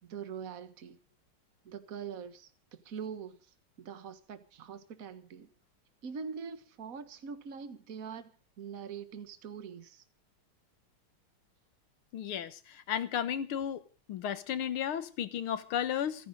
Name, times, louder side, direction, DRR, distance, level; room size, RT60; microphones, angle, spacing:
voice 1, 0.0-1.0 1.6-3.5 3.8-5.5 6.0-8.3 8.6-10.0, right 6 dB, 45° right, 1.7 m, -43 dB
voice 2, 12.1-13.8 14.1-16.3, left 9 dB, 80° left, 2.1 m, -34 dB
29.0 x 10.5 x 3.9 m
omnidirectional pair, 2.3 m